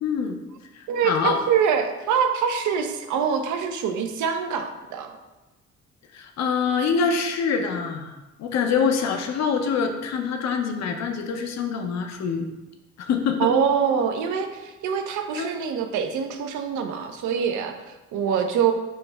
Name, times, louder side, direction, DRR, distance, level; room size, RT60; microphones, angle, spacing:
voice 1, 0.0-0.4 0.7-1.4 6.1-12.5 13.0-13.5 15.4-15.5, left 6 dB, 60° left, 5 dB, 0.5 m, -25 dB
voice 2, 0.9-5.2 13.4-18.7, right 7 dB, 75° right, 6 dB, 0.5 m, -24 dB
5.6 x 2.1 x 3.3 m, 1.1 s
cardioid pair, 90°, 30 cm